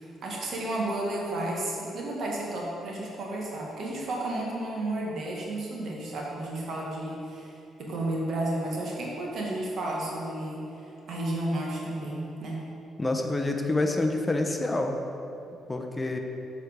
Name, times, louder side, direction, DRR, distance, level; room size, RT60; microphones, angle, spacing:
voice 1, 0.0-12.6, right 1 dB, 65° right, -3 dB, 1.4 m, -32 dB
voice 2, 13.0-15.0 15.7-16.2, left 2 dB, 20° left, 4 dB, 0.7 m, -27 dB
6.8 x 4.7 x 5.0 m, 2.8 s
cardioid pair, 90°, 0 cm